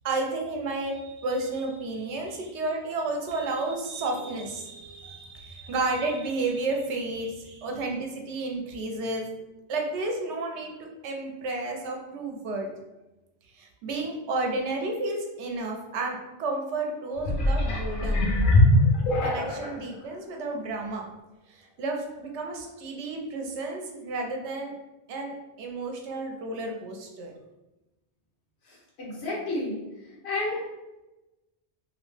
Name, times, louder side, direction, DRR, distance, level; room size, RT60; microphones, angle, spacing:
voice 1, 0.0-9.3 9.7-12.7 13.6-18.2 19.2-21.0 21.5-24.7 25.1-27.3, right 2 dB, 80° right, 2 dB, 0.9 m, -32 dB
sound 1, 17.2-19.8 20.4-20.5, left 1 dB, 55° left, 0.7 m, -22 dB
voice 2, 28.7-30.6, left 2 dB, 70° left, -5 dB, 1.1 m, -32 dB
2.7 x 2.1 x 3.1 m, 1.0 s
omnidirectional pair, 1.1 m